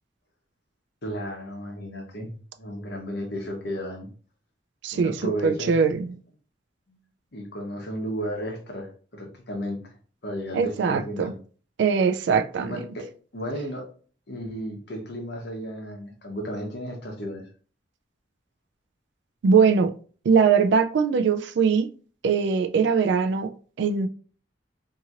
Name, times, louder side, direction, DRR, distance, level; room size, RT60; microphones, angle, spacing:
voice 1, 1.0-4.1 4.9-5.7 6.9-7.0 7.3-9.9 10.2-11.3 12.6-13.0 13.3-13.9 14.3-17.5, equal, 60° left, 0.9 m, -34 dB
voice 2, 4.8-5.2 5.4-6.2 10.5-11.3 11.8-12.8 19.4-19.9 20.3-21.9 22.2-23.5 23.8-24.1, right 5 dB, 70° right, 0.3 m, -21 dB
2.8 x 2.5 x 2.8 m
head